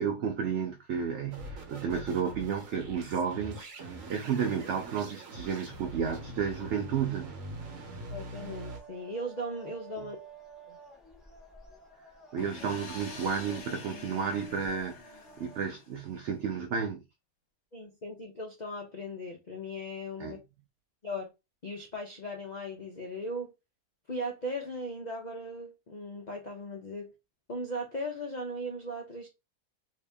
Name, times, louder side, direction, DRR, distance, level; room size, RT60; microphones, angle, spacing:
voice 1, 0.0-7.4 12.3-15.0 15.4-17.0 20.2-20.3, right 6 dB, 80° right, 0.6 m, -32 dB
sound 1, 1.3-8.8, right 2 dB, 55° right, 1.1 m, -43 dB
voice 2, 8.1-10.2 10.7-10.8 17.7-20.4 21.0-21.3 21.6-23.5 24.1-27.1 27.5-29.3, equal, 80° left, 0.4 m, -38 dB
sound 2, 8.3-15.7, right 4 dB, ahead, 0.4 m, -51 dB
sound 3, 12.4-16.1, left 4 dB, 50° left, 1.1 m, -47 dB
2.9 x 2.7 x 3.4 m
omnidirectional pair, 1.8 m